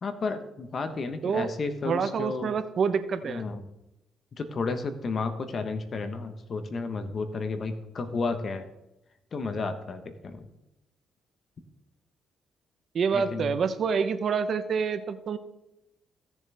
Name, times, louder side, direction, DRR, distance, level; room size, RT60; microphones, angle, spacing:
voice 1, 0.0-2.5 3.2-3.7 4.4-8.7 9.3-10.5 13.1-13.5, left 4 dB, 45° left, 9 dB, 1.2 m, -32 dB
voice 2, 1.8-3.4 12.9-15.4, right 6 dB, 55° right, 11 dB, 0.9 m, -27 dB
16.5 x 7.2 x 3.5 m, 0.90 s
cardioid pair, 90°, 0 cm